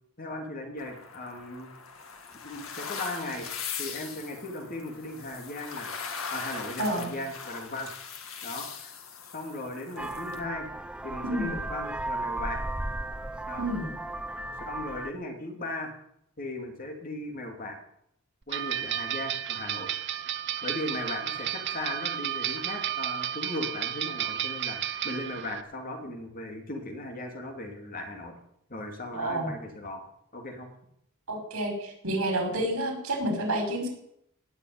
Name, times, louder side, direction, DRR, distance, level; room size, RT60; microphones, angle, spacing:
voice 1, 0.2-1.7 2.4-3.5 3.8-7.9 8.4-9.0 9.2-10.7 11.0-12.6 13.5-13.7 14.7-15.9 16.4-17.8 18.5-19.9 20.6-28.3 28.7-30.0 30.3-30.7, left 1 dB, 40° left, 3 dB, 2.9 m, -37 dB
sound 1, 0.8-10.4, left 6 dB, 70° left, 2.0 m, -40 dB
voice 2, 6.8-7.1 11.2-11.5 13.6-13.9 29.1-29.5 31.3-33.9, right 1 dB, 80° right, 3 dB, 5.4 m, -29 dB
Vehicle horn car horn honking, 10.0-15.1, right 2 dB, 5° right, 0.6 m, -35 dB
sound 2, 18.5-25.6, right 11 dB, 55° right, 0.9 m, -32 dB
18.0 x 6.7 x 9.7 m, 0.76 s
head